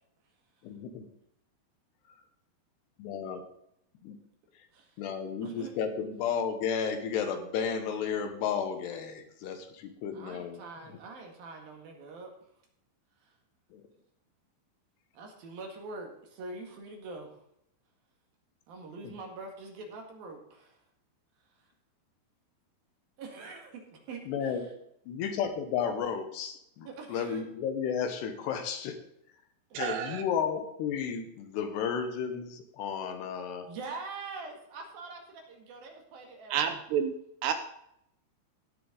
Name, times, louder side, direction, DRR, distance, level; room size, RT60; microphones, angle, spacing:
voice 1, 0.6-1.1 3.0-3.4 4.0-4.2 5.0-10.6 13.7-13.8 19.0-19.1 24.3-24.6 25.1-29.0 29.8-33.7, left 7 dB, 75° left, 7 dB, 3.1 m, -33 dB
voice 2, 5.4-5.7 10.1-12.3 13.2-13.3 15.1-17.4 18.7-20.8 21.5-21.7 23.2-24.7 26.9-27.4 29.7-29.8 33.7-36.8, right 3 dB, 60° right, 2 dB, 3.4 m, -44 dB
voice 3, 29.7-30.2 36.5-37.1 37.4-37.5, right 8 dB, 75° right, 8 dB, 2.7 m, -29 dB
17.0 x 6.8 x 3.9 m, 0.76 s
omnidirectional pair, 5.2 m